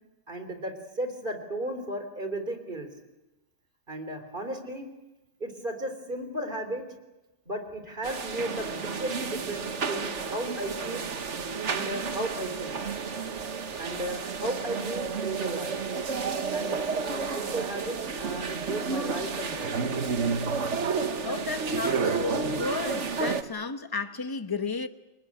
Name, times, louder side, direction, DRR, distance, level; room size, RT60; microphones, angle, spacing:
voice 1, 0.3-2.9 3.9-4.9 5.4-6.8 7.5-11.1 11.6-12.8 13.8-15.8 16.5-19.7, right 1 dB, 40° right, 3.8 m, -35 dB
sound 1, 8.0-23.4, right 5 dB, 65° right, 1.6 m, -31 dB
voice 2, 21.2-24.9, left 4 dB, 20° left, 1.1 m, -33 dB
29.5 x 19.5 x 8.8 m
omnidirectional pair, 1.3 m